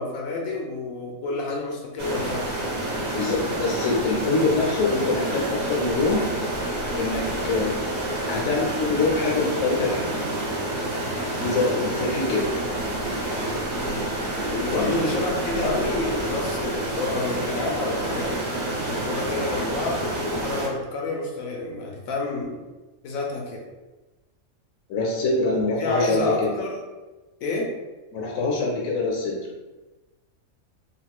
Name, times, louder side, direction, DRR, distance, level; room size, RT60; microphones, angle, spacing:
voice 1, 0.0-2.4 13.7-14.0 14.5-18.5 19.0-22.6 23.0-23.6 25.8-26.8 27.4-27.7, left 2 dB, 85° left, -1 dB, 1.1 m, -29 dB
sound 1, 2.0-20.7, right 1 dB, 25° right, 0.7 m, -28 dB
voice 2, 3.1-6.2 7.0-7.7 8.3-10.1 11.4-12.5 14.7-15.0 24.9-26.5 28.1-29.4, left 3 dB, 65° left, -2 dB, 0.9 m, -24 dB
3.5 x 2.6 x 2.2 m, 1.1 s
omnidirectional pair, 1.4 m